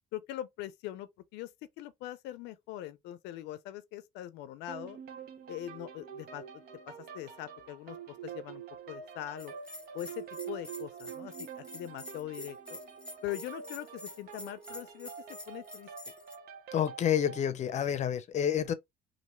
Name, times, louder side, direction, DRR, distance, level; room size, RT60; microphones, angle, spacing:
voice 1, 0.1-1.5 1.8-5.0 5.5-9.5 9.9-12.8 13.2-15.9, left 13 dB, 90° left, 0.4 m, -42 dB
sound 1, 4.7-17.5, right 7 dB, 70° right, 0.8 m, -46 dB
Bell, 9.4-16.4, left 1 dB, 5° left, 0.7 m, -47 dB
voice 2, 16.7-18.7, left 9 dB, 45° left, 0.6 m, -29 dB
3.2 x 2.6 x 2.9 m
cardioid pair, 110°, 17 cm